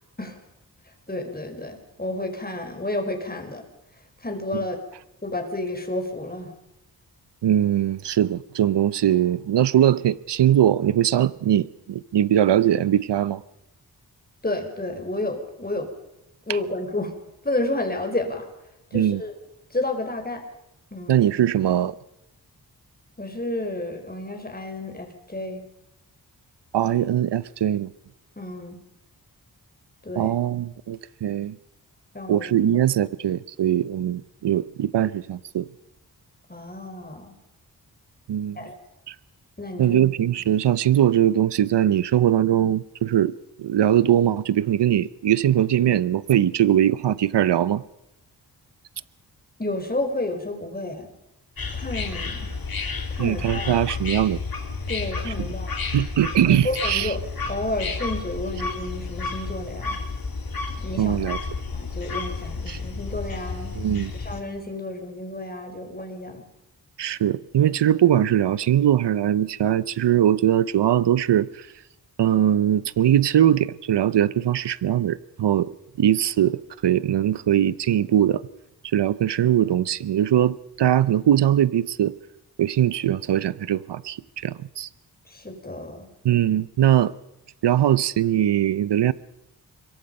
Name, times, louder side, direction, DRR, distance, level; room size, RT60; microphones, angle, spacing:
voice 1, 1.1-3.6 4.2-4.8 5.2-6.5 14.4-15.9 16.5-17.1 17.4-18.5 18.9-19.3 19.7-20.4 20.9-21.2 23.2-25.6 28.4-28.8 30.0-30.3 32.1-32.5 36.5-37.3 38.5-38.8 39.6-40.0 49.6-51.1 51.7-52.5 53.1-53.8 54.9-55.7 56.5-57.2 57.5-60.0 60.8-61.4 61.7-63.8 64.1-66.4 85.3-86.1, left 2 dB, 20° left, 4.9 m, -31 dB
voice 2, 7.4-13.4 18.9-19.2 21.1-21.9 26.7-27.9 30.2-31.6 32.3-35.7 38.3-38.6 39.1-39.2 39.8-47.8 53.2-54.4 55.4-55.5 55.9-57.1 61.0-61.4 62.7-62.8 63.8-64.1 67.0-71.7 72.2-75.7 76.0-78.4 78.9-82.1 82.6-84.9 86.2-87.1 87.6-89.1, right 11 dB, 85° right, 0.7 m, -21 dB
sound 1, 51.6-64.4, left 4 dB, 60° left, 3.2 m, -31 dB
26.0 x 23.0 x 5.4 m
wide cardioid pair, 75°, 40 cm